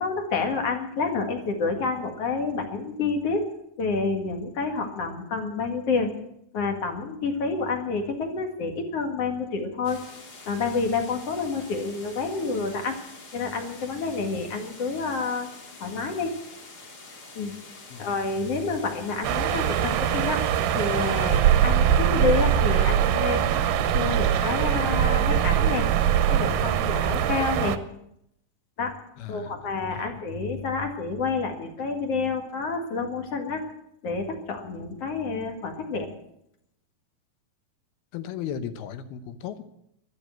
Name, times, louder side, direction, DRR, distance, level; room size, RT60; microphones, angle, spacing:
voice 1, 0.0-3.4 3.8-6.1 6.5-10.0 10.5-13.0 13.3-15.5 15.8-16.3 17.3-17.5 18.0-20.4 20.7-23.6 23.9-25.9 26.3-27.8 28.8-28.9 29.3-33.6 34.0-36.1, left 4 dB, 50° left, 4 dB, 2.5 m, -28 dB
sound 1, 9.8-21.4, left 3 dB, 35° left, 2.1 m, -46 dB
sound 2, 19.2-27.8, right 9 dB, 80° right, 2.5 m, -22 dB
voice 2, 29.2-29.5 30.0-30.2 38.1-39.6, left 9 dB, 85° left, 10 dB, 3.0 m, -36 dB
12.5 x 12.0 x 9.1 m, 0.77 s
omnidirectional pair, 4.3 m